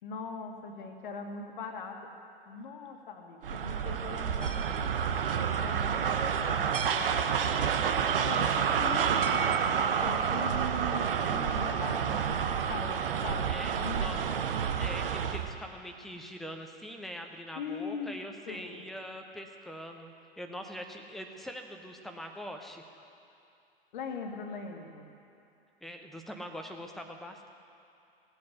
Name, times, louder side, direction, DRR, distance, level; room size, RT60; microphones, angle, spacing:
voice 1, 0.0-2.1 2.5-4.7 5.3-7.3 8.2-14.3 17.5-18.2 18.5-18.8 23.9-25.1, left 4 dB, 50° left, 3 dB, 1.9 m, -41 dB
sound 1, 3.4-15.5, right 7 dB, 60° right, 1.0 m, -29 dB
voice 2, 13.4-14.3 14.8-22.8 25.8-27.5, equal, ahead, 4 dB, 1.0 m, -43 dB
18.0 x 8.5 x 8.2 m, 2.7 s
figure-of-eight pair, 100°, 32 cm